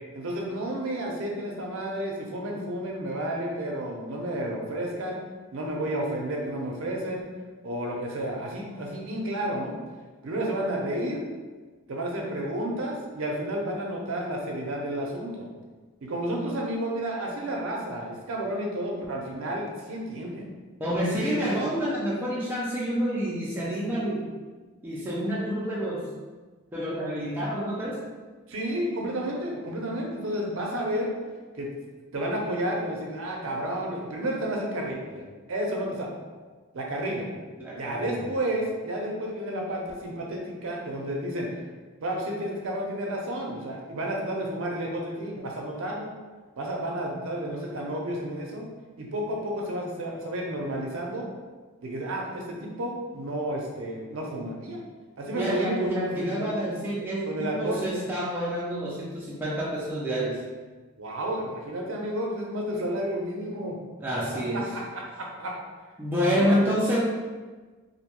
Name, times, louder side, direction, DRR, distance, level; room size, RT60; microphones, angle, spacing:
voice 1, 0.1-5.2 5.5-7.2 7.6-9.7 10.2-11.3 11.9-15.5 16.0-20.5 21.1-21.6 28.5-31.1 31.6-31.7 32.1-35.2 35.5-36.1 36.7-37.3 37.8-41.5 42.0-46.1 46.6-48.6 49.0-51.3 51.8-54.8 55.2-56.5 57.2-57.8 61.0-63.8 64.3-65.5 66.4-66.7, right 1 dB, 60° right, -1 dB, 0.5 m, -31 dB
voice 2, 20.8-24.3 24.8-26.1 26.7-28.0 37.6-38.2 55.3-60.4 64.0-64.6 66.0-67.0, equal, 10° right, -6 dB, 0.3 m, -28 dB
2.6 x 2.1 x 2.9 m, 1.3 s
head